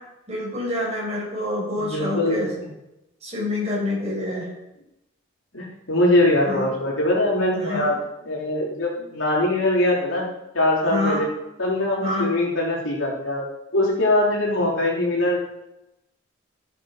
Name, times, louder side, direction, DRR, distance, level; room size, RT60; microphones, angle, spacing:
voice 1, 0.3-2.5 3.2-4.5 6.5-6.7 7.5-7.9 10.8-11.2 12.0-12.3, left 2 dB, 30° right, -4 dB, 5.8 m, -27 dB
voice 2, 1.8-2.5 5.5-8.0 8.2-10.3 10.5-11.3 11.6-13.5 13.7-15.4, left 1 dB, 75° left, -3 dB, 3.6 m, -22 dB
14.0 x 8.3 x 6.0 m, 0.91 s
head